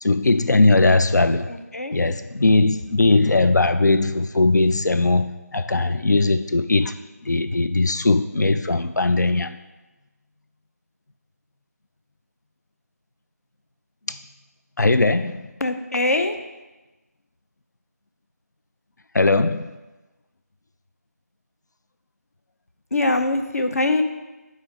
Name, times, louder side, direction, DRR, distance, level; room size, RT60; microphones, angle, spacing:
voice 1, 0.0-1.5 1.9-7.0 7.2-9.6 14.1-14.2 14.8-15.5 19.1-19.8, left 2 dB, 85° left, 0.5 m, -19 dB
voice 2, 1.5-1.9 15.6-16.3 22.9-24.0, left 2 dB, 60° left, 0.8 m, -22 dB
5.6 x 5.1 x 6.4 m
figure-of-eight pair, 165°, 9 cm